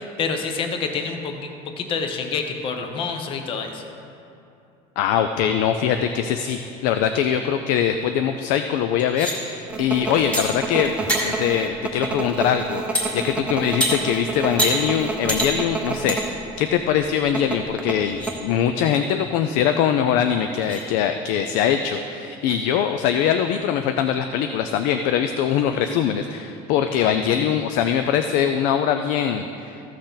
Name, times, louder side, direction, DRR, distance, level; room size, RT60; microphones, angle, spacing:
voice 1, 0.0-1.5 1.8-3.8, left 5 dB, 40° left, 5 dB, 0.8 m, -27 dB
voice 2, 5.0-10.9 11.2-29.8, left 8 dB, 70° left, 7 dB, 0.5 m, -22 dB
sound 1, 9.0-9.3 10.3-10.4 10.8-11.2 12.9-13.1 13.8-13.9 14.6-14.7 15.3-15.5 16.1-16.2 16.6-16.7 17.4-17.5 18.0-18.3 20.0-20.1 20.6-20.8, right 1 dB, 10° left, 1.9 m, -24 dB
sound 2, 9.7-16.3 16.6-16.8 17.3-18.4, right 3 dB, 5° right, 0.6 m, -29 dB
14.5 x 6.4 x 3.9 m, 2.7 s
cardioid pair, 160°, 14 cm